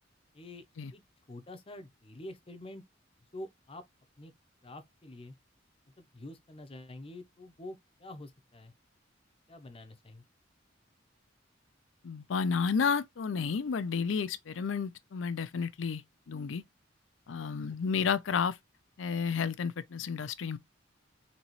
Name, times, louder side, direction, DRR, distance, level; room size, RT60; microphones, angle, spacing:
voice 1, 1.3-2.8 3.3-3.8 4.2-4.3 4.6-5.3 6.0-8.7 9.5-10.2 17.9-18.1, left 1 dB, 30° left, 0.7 m, -47 dB
voice 2, 12.0-16.6 17.3-18.6 19.0-20.6, left 6 dB, 80° left, 0.5 m, -31 dB
4.1 x 2.9 x 3.0 m
head